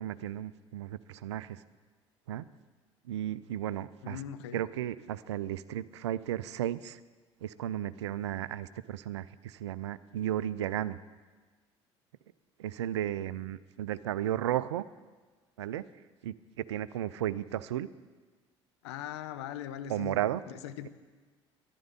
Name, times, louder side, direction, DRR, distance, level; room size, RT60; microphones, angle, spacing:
voice 1, 0.0-1.6 2.3-2.5 3.1-4.2 4.5-7.0 7.4-11.0 12.6-14.8 15.6-15.8 16.2-17.9 19.9-20.4, right 12 dB, 75° right, 17 dB, 0.4 m, -34 dB
voice 2, 4.0-4.6 18.8-20.2 20.5-20.9, left 10 dB, 70° left, 11 dB, 0.7 m, -40 dB
12.5 x 11.0 x 5.3 m, 1.3 s
figure-of-eight pair, 55°, 15 cm